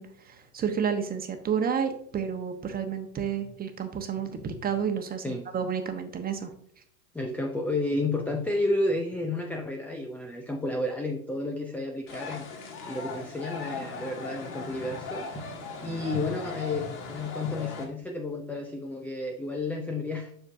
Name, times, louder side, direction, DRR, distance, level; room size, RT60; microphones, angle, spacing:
voice 1, 0.0-6.5, right 7 dB, 20° right, 6 dB, 1.0 m, -31 dB
voice 2, 7.1-12.5 12.9-15.3 15.8-20.3, left 2 dB, 5° left, 3 dB, 0.4 m, -31 dB
sound 1, 12.1-17.8, left 3 dB, 45° left, 2.1 m, -38 dB
7.6 x 6.4 x 2.6 m, 0.63 s
hypercardioid pair, 95°, 44 cm